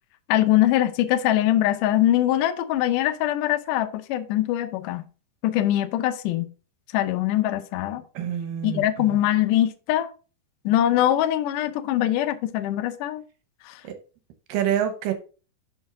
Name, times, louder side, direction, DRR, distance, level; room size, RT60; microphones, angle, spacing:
voice 1, 0.3-5.0 5.4-6.5 6.9-8.0 8.6-10.1 10.7-13.2 13.7-13.8, left 13 dB, 80° left, 1.9 m, -22 dB
voice 2, 8.1-9.2 13.8-14.0 14.5-15.1, right 9 dB, 70° right, 2.3 m, -27 dB
6.3 x 6.2 x 3.7 m
omnidirectional pair, 4.5 m